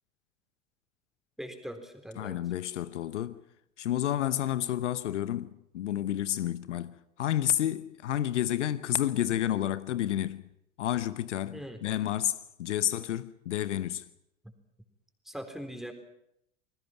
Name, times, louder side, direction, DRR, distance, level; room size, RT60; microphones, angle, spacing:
voice 1, 1.4-2.4 11.5-11.8 15.3-15.9, equal, ahead, 4.0 m, -41 dB
voice 2, 2.2-3.4 3.8-10.5 10.8-14.0, left 12 dB, 75° left, 0.9 m, -30 dB
29.0 x 20.0 x 5.9 m
hypercardioid pair, 85°, 36 cm